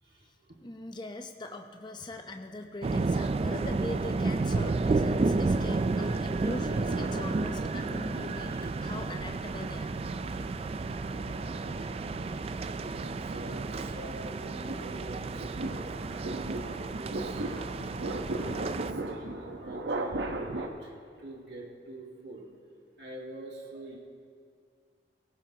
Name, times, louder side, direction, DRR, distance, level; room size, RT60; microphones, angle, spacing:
voice 1, 0.0-0.6 11.7-18.4 18.7-22.6 23.0-24.0, right 2 dB, 70° right, -3 dB, 1.9 m, -46 dB
voice 2, 0.6-10.0, left 1 dB, 25° left, 4 dB, 0.7 m, -41 dB
sound 1, 2.8-18.9, right 3 dB, 35° right, 0.3 m, -31 dB
sound 2, 4.6-17.1, left 1 dB, 85° left, 4.5 m, -57 dB
sound 3, 6.6-8.0 8.6-20.7, right 2 dB, 85° right, 1.0 m, -39 dB
19.0 x 16.5 x 2.8 m, 2.2 s
head